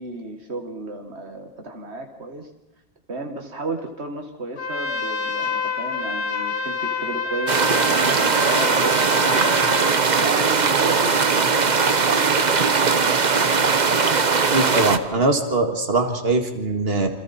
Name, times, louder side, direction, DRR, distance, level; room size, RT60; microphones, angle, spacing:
voice 1, 0.0-2.5 3.1-9.5 10.2-12.3, right 3 dB, 85° right, 3 dB, 2.1 m, -33 dB
Trumpet, 4.6-10.0, left 4 dB, 85° left, 1.7 m, -27 dB
sound 1, 7.5-15.0, right 5 dB, 45° right, 1.1 m, -19 dB
voice 2, 14.5-17.1, right 2 dB, 65° right, 4 dB, 2.3 m, -21 dB
28.0 x 26.5 x 4.4 m, 0.95 s
omnidirectional pair, 1.1 m